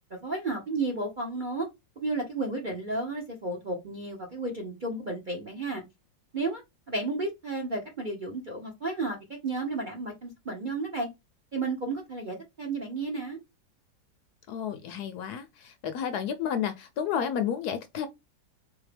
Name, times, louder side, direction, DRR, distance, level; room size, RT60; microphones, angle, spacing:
voice 1, 0.1-1.7 2.0-5.8 6.3-6.6 6.9-9.2 9.4-11.1 11.5-13.4, right 3 dB, 40° right, 0.7 m, -32 dB
voice 2, 14.5-18.1, left 8 dB, 70° left, 1.0 m, -31 dB
3.7 x 2.8 x 3.2 m
omnidirectional pair, 1.9 m